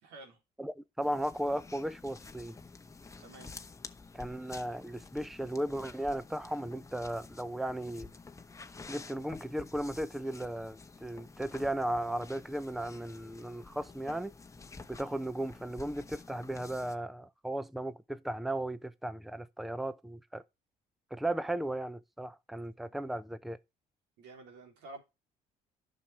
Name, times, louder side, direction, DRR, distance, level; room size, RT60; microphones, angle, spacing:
voice 1, 0.0-0.4 3.2-3.5 22.8-23.0 24.2-25.0, right 2 dB, 90° right, 3.3 m, -50 dB
voice 2, 0.6-2.6 4.1-8.1 8.9-14.3 14.9-20.4 21.1-23.6, right 1 dB, ahead, 0.6 m, -36 dB
sound 1, 1.0-16.9, left 4 dB, 20° left, 1.0 m, -50 dB
11.0 x 6.2 x 3.3 m
cardioid pair, 110°, 17 cm